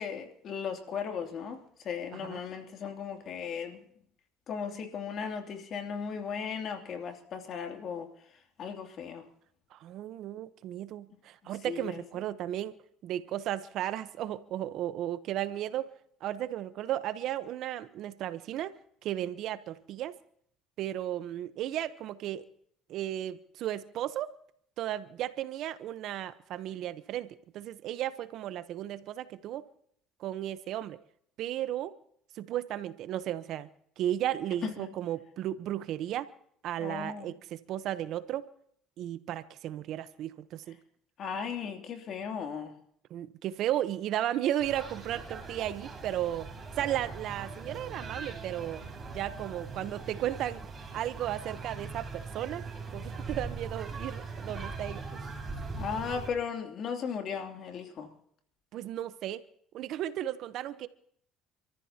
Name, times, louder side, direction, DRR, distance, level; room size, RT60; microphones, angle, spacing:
voice 1, 0.0-3.8 4.5-8.1 8.6-9.2 11.6-12.0 34.6-34.9 36.8-37.4 41.2-42.7 55.7-58.1, left 6 dB, 55° left, 2.8 m, -36 dB
voice 2, 9.7-12.8 13.0-15.9 16.2-18.7 19.0-20.2 20.8-22.4 22.9-24.3 24.8-29.6 30.2-31.0 31.4-32.0 32.4-33.7 34.0-36.3 36.6-38.4 39.0-40.8 43.1-46.5 46.8-48.8 49.1-52.6 52.9-55.2 58.7-59.4 59.7-60.9, right 12 dB, 65° right, 0.9 m, -34 dB
sound 1, 44.6-56.3, right 4 dB, 25° right, 5.3 m, -41 dB
28.0 x 14.0 x 2.9 m
supercardioid pair, 95°, 0 cm